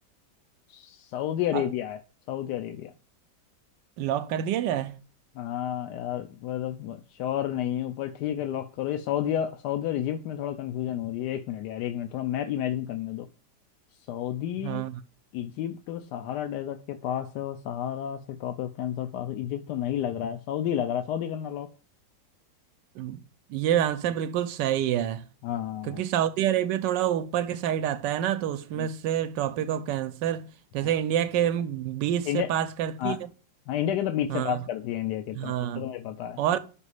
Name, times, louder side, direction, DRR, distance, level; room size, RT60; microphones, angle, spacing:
voice 1, 0.7-2.0 2.3-2.9 5.3-13.3 14.1-14.8 15.3-21.7 25.4-26.0 28.8-28.9 32.3-32.5 33.0-33.2 33.7-36.4, left 11 dB, 75° left, 1.1 m, -31 dB
voice 2, 4.0-5.0 14.6-14.9 23.0-23.2 23.5-25.2 25.8-30.5 30.7-33.3 34.3-34.6 35.3-35.9 36.4-36.6, right 10 dB, 75° right, 1.2 m, -27 dB
5.5 x 5.0 x 4.8 m
omnidirectional pair, 2.0 m